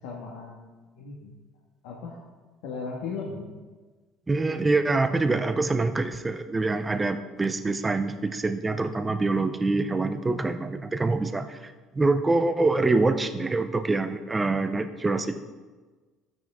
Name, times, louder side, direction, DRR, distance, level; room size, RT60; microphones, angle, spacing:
voice 1, 0.0-1.3 1.8-2.2 2.6-3.5, left 4 dB, 90° left, -3 dB, 1.7 m, -37 dB
voice 2, 4.3-15.5, right 3 dB, 15° right, 10 dB, 0.6 m, -25 dB
12.5 x 9.2 x 3.6 m, 1.3 s
cardioid pair, 145°, 0 cm